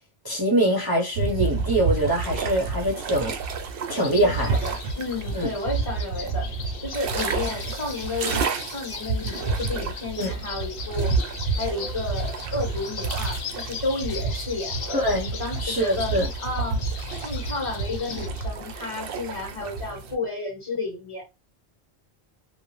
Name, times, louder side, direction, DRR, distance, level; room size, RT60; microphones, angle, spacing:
voice 1, 0.2-3.4 3.9-4.5 5.3-5.5 10.2-10.3 14.9-15.3 15.6-16.3, right 1 dB, 25° right, 0.6 m, -23 dB
sound 1, 1.1-20.2, right 4 dB, 65° right, 0.7 m, -30 dB
sound 2, 3.9-18.3, left 6 dB, 65° left, 0.7 m, -39 dB
voice 2, 4.2-6.5 6.8-11.1 11.6-15.0 15.4-16.2 16.4-16.8 17.2-21.2, left 2 dB, 30° left, 1.4 m, -32 dB
sound 3, 10.2-10.4 11.0-11.1 11.7-12.2 13.3-13.5 14.1-14.2 14.8-15.4, equal, 5° left, 1.5 m, -42 dB
2.7 x 2.0 x 3.0 m
omnidirectional pair, 1.1 m